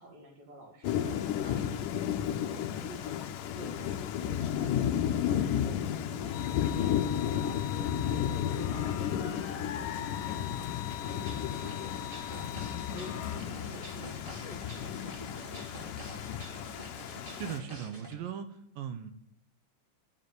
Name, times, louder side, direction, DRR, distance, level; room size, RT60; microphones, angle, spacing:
voice 1, 0.0-11.9 12.3-12.6 12.9-13.2 13.5-15.7 16.1-16.7, right 2 dB, 60° right, 0 dB, 3.4 m, -50 dB
Thunder / Rain, 0.8-17.6, left 10 dB, 85° left, 1.8 m, -33 dB
sound 1, 6.3-13.4, left 12 dB, 65° left, 2.3 m, -43 dB
sound 2, 11.0-18.1, right 1 dB, 40° right, 0.7 m, -48 dB
voice 2, 17.3-19.1, right 8 dB, 75° right, 9 dB, 2.2 m, -39 dB
14.0 x 7.2 x 9.3 m, 0.74 s
omnidirectional pair, 5.1 m